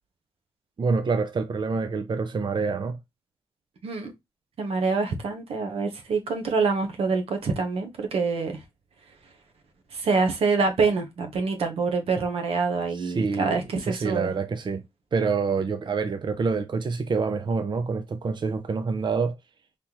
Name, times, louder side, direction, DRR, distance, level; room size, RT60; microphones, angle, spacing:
voice 1, 0.8-3.0 12.9-13.6 13.9-14.8 15.1-19.4, right 4 dB, 50° right, 0.6 m, -26 dB
voice 2, 4.6-8.6 9.9-14.3, right 4 dB, 85° right, 1.2 m, -26 dB
4.2 x 3.4 x 2.8 m
cardioid pair, 70°, 10 cm